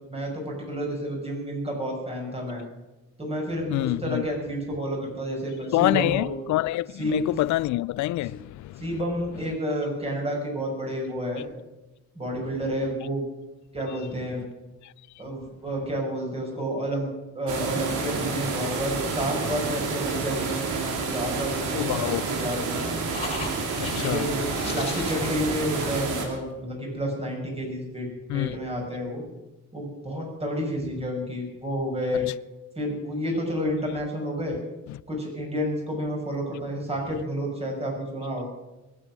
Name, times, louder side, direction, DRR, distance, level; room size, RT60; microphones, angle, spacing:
voice 1, 0.1-2.6 3.2-6.3 7.0-7.2 8.8-11.4 12.1-13.2 13.7-14.4 15.2-17.1 17.3-22.9 24.0-24.5 24.7-29.2 29.7-32.3 32.8-34.6 35.1-38.5, equal, 20° right, 6.1 m, -30 dB
voice 2, 3.7-4.3 5.7-8.9 21.7-22.2 23.8-24.8 25.8-25.9 28.3-28.5 32.1-32.2 34.9-35.0, left 16 dB, 70° left, 0.4 m, -27 dB
sound 1, 17.5-26.3, right 4 dB, 90° right, 2.6 m, -29 dB
sound 2, 23.1-26.4, left 2 dB, 20° left, 3.3 m, -38 dB
21.5 x 8.5 x 6.2 m
cardioid pair, 90°, 30 cm